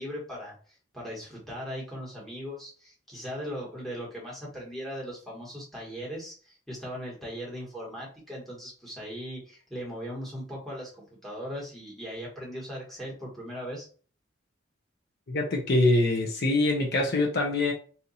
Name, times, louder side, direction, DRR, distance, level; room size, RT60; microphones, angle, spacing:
voice 1, 0.0-13.9, equal, ahead, 1.2 m, -39 dB
voice 2, 15.3-17.7, left 2 dB, 50° left, 0.6 m, -24 dB
2.8 x 2.5 x 4.0 m
head